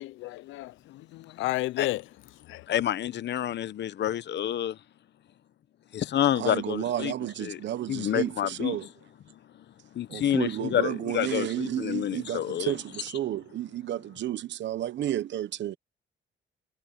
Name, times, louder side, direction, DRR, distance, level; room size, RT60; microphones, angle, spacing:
voice 1, 0.0-2.0 2.5-2.7, left 17 dB, 85° left, 0.4 m, -32 dB
voice 2, 2.7-4.8 5.9-7.1 7.4-7.6 7.9-8.8 9.3-9.6 9.9-12.8, left 11 dB, 60° left, 0.9 m, -28 dB
voice 3, 6.4-8.9 10.1-15.8, right 12 dB, 65° right, 0.9 m, -32 dB
cardioid pair, 90°, 20 cm